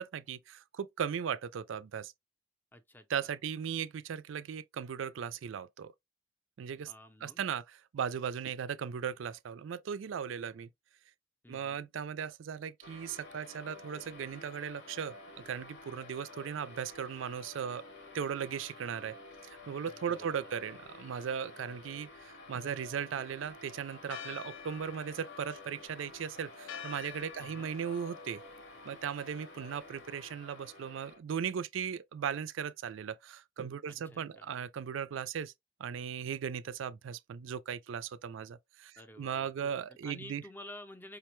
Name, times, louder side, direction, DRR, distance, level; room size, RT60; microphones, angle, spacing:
voice 1, 0.0-2.1 3.1-5.9 6.6-6.9 7.2-10.7 11.5-17.8 18.1-19.2 19.4-28.4 28.8-35.5 35.8-40.4, right 7 dB, 75° right, 0.4 m, -37 dB
voice 2, 2.7-3.3 6.9-7.4 11.4-11.9 19.8-20.5 27.4-27.7 33.9-34.5 39.0-39.5 40.0-41.2, left 1 dB, 10° left, 0.5 m, -51 dB
sound 1, 12.8-31.2, left 2 dB, 65° left, 0.9 m, -51 dB
Church bell, 24.1-30.3, left 7 dB, 85° left, 0.4 m, -49 dB
5.1 x 2.1 x 3.0 m
head